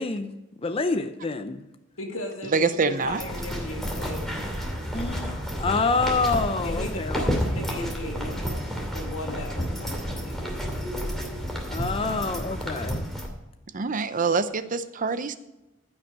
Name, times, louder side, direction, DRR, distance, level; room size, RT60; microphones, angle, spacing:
voice 1, 0.0-1.6 4.9-7.2 11.7-13.1, left 3 dB, 30° left, 8 dB, 0.5 m, -27 dB
voice 2, 2.0-4.5 6.6-8.7 8.9-11.0 12.1-12.5, left 1 dB, 90° left, 2 dB, 2.4 m, -37 dB
voice 3, 2.5-3.2 13.7-15.3, right 4 dB, 40° right, 12 dB, 0.6 m, -25 dB
sound 1, 3.0-13.3, equal, ahead, 2.5 m, -30 dB
15.0 x 6.2 x 5.3 m, 0.98 s
head